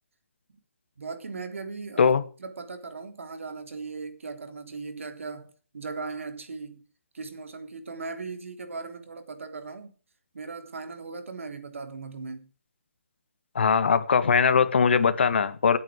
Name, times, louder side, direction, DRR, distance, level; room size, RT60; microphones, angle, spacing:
voice 1, 1.0-6.8 7.1-9.9 10.3-12.5, right 4 dB, 65° right, 3.4 m, -38 dB
voice 2, 13.5-15.8, left 6 dB, 50° left, 1.6 m, -21 dB
17.5 x 9.0 x 5.2 m
hypercardioid pair, 165°, 7 cm